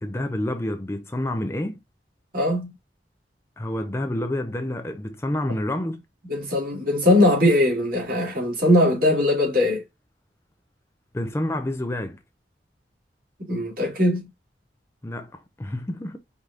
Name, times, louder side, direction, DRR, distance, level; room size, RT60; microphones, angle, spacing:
voice 1, 0.0-1.8 3.6-6.0 11.1-12.2 15.0-16.2, left 1 dB, 15° left, 0.5 m, -28 dB
voice 2, 2.3-2.7 6.3-9.8 13.5-14.3, left 1 dB, 55° right, 2.4 m, -20 dB
4.8 x 2.7 x 3.7 m
head